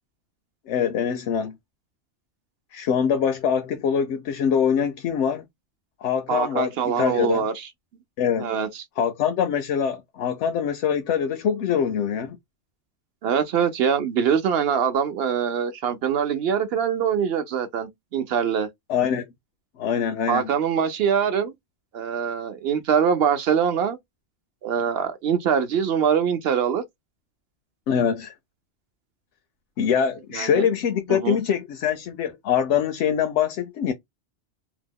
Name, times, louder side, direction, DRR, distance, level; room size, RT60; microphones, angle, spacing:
voice 1, 0.7-1.6 2.7-5.4 6.0-7.4 8.2-8.5 9.0-12.4 18.9-19.3 19.8-20.5 27.9-28.3 29.8-33.9, left 8 dB, 90° left, 0.9 m, -24 dB
voice 2, 6.3-7.7 8.4-8.8 13.2-18.7 20.3-21.5 21.9-24.0 24.6-26.8 30.3-30.7 31.1-31.4, right 7 dB, 65° right, 0.8 m, -23 dB
2.9 x 2.0 x 3.5 m
omnidirectional pair, 1.2 m